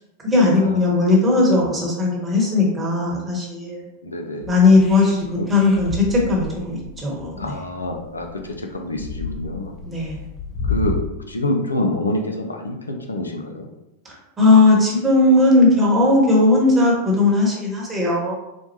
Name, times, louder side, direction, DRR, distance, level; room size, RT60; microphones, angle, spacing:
voice 1, 0.2-3.8 4.5-7.5 9.8-10.2 14.4-18.3, left 2 dB, 20° right, -3 dB, 1.1 m, -17 dB
voice 2, 4.0-4.5 5.4-5.5 7.4-9.7 10.7-13.7, left 1 dB, 80° left, 2 dB, 0.4 m, -27 dB
sound 1, 4.4-10.9, left 4 dB, 15° left, 0.6 m, -31 dB
4.3 x 2.2 x 2.8 m, 0.92 s
figure-of-eight pair, 90°, 0 cm